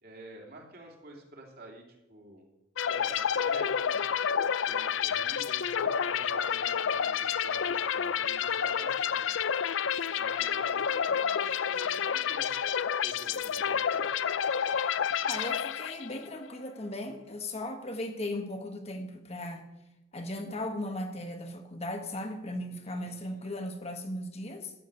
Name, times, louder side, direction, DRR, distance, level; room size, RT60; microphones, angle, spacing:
voice 1, 0.0-2.5 2.8-4.0 4.6-9.4 10.1-12.5 12.9-14.1 22.8-23.5, right 2 dB, 50° right, 1 dB, 3.1 m, -49 dB
sound 1, 2.8-16.3, left 7 dB, 80° left, 0.5 m, -29 dB
voice 2, 15.2-19.7 20.1-24.7, left 1 dB, 35° left, 5 dB, 1.3 m, -37 dB
13.0 x 9.1 x 6.9 m, 0.94 s
head